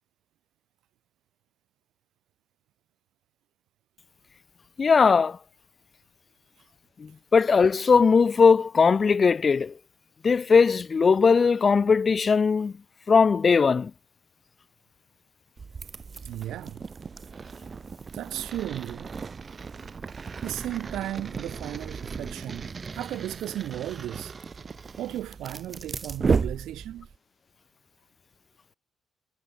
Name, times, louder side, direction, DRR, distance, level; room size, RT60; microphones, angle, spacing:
voice 1, 4.8-5.4 7.0-9.7 10.2-12.7 13.1-13.9, left 5 dB, 40° left, 0.8 m, -19 dB
sound 1, 15.6-27.2, right 5 dB, 35° right, 1.6 m, -34 dB
voice 2, 16.2-16.8 18.1-19.1 20.4-24.3 25.0-27.1, right 13 dB, 85° right, 2.3 m, -35 dB
cardioid pair, 90°, 0 cm